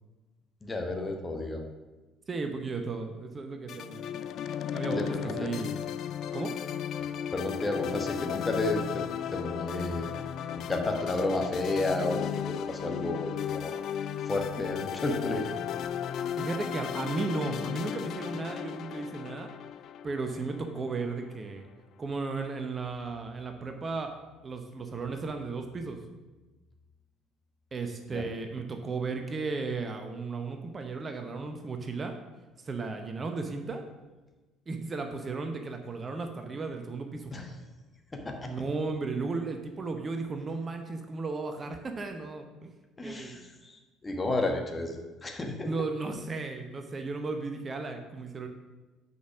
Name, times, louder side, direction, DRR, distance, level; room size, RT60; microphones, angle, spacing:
voice 1, 0.6-1.7 4.9-5.5 7.3-10.2 10.5-13.7 14.2-15.5 28.1-28.3 37.3-37.5 38.1-38.5 43.0-43.8 44.0-45.7, left 2 dB, 20° left, 3 dB, 1.2 m, -32 dB
voice 2, 2.3-4.0 4.7-5.8 6.3-6.5 16.3-19.5 20.0-21.7 22.0-24.1 24.4-26.0 27.7-32.2 32.7-33.8 34.7-37.3 38.4-42.7 43.0-43.4 45.6-48.5, right 3 dB, 30° right, 5 dB, 0.8 m, -35 dB
sound 1, 3.7-21.1, left 9 dB, 50° left, 0.3 m, -35 dB
6.3 x 5.4 x 6.0 m, 1.2 s
figure-of-eight pair, 55°, 0 cm